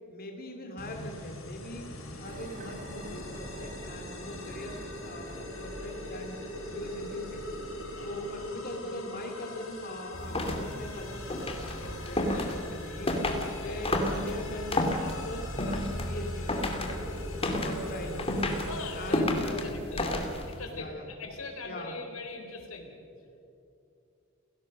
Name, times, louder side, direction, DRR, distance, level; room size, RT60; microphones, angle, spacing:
voice 1, 0.1-6.3 6.7-7.4 8.0-17.1 17.6-18.3 18.9-20.4 20.7-21.1 21.6-21.9, left 1 dB, 45° left, 3 dB, 2.5 m, -41 dB
sound 1, 0.8-19.2, left 2 dB, 70° left, 4.2 m, -43 dB
some tool, 2.2-8.5, right 1 dB, 40° right, 2.1 m, -45 dB
sound 2, 10.1-20.7, left 1 dB, 30° left, 2.6 m, -32 dB
voice 2, 11.8-12.4 13.7-14.0 18.6-20.1 20.5-23.0, left 3 dB, 90° left, 4 dB, 3.7 m, -42 dB
30.0 x 17.0 x 6.5 m, 2.6 s
head